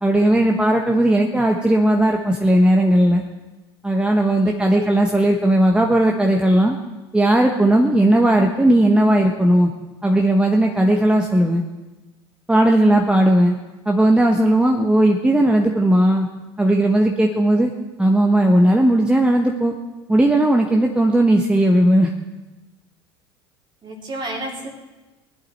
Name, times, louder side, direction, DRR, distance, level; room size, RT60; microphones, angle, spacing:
voice 1, 0.0-3.2 3.8-6.8 7.1-9.7 10.0-11.6 12.5-13.5 13.9-16.3 16.6-17.7 18.0-19.7 20.1-22.1, right 1 dB, 5° right, 2 dB, 1.2 m, -16 dB
voice 2, 4.4-4.9 23.8-24.7, right 2 dB, 35° right, 0 dB, 2.8 m, -31 dB
19.5 x 11.0 x 4.3 m, 1.1 s
hypercardioid pair, 75°, 14 cm